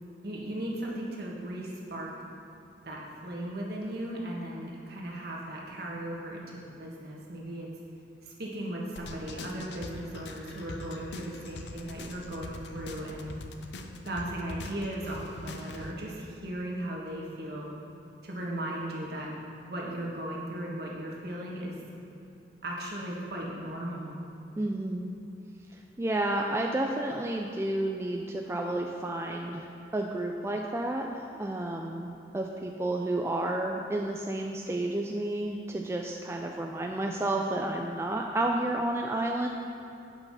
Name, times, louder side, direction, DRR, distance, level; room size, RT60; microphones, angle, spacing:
voice 1, 0.2-2.1 2.8-7.7 8.2-13.3 14.0-17.7 18.2-19.3 19.6-21.8 22.6-24.2, right 1 dB, 55° right, -3 dB, 1.5 m, -37 dB
sound 1, 9.0-15.9, left 2 dB, 65° left, 0.6 m, -43 dB
voice 2, 24.6-25.1 26.0-39.5, right 1 dB, 15° right, 1 dB, 0.3 m, -31 dB
8.1 x 5.6 x 5.6 m, 2.8 s
head